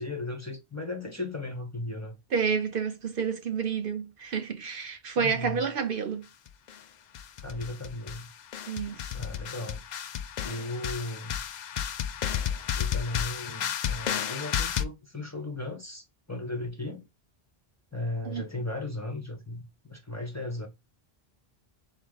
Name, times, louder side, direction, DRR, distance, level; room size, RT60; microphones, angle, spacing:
voice 1, 0.0-2.2 5.2-5.7 7.4-8.3 9.1-9.8 10.4-11.4 12.8-17.1 17.9-20.7, left 2 dB, 15° left, 1.0 m, -36 dB
voice 2, 2.3-6.3 8.7-9.1 18.2-18.4, right 6 dB, 60° right, 0.8 m, -30 dB
sound 1, 6.5-6.7 7.1-8.2 8.5-14.8, left 9 dB, 55° left, 0.5 m, -32 dB
4.1 x 3.2 x 3.9 m
omnidirectional pair, 1.1 m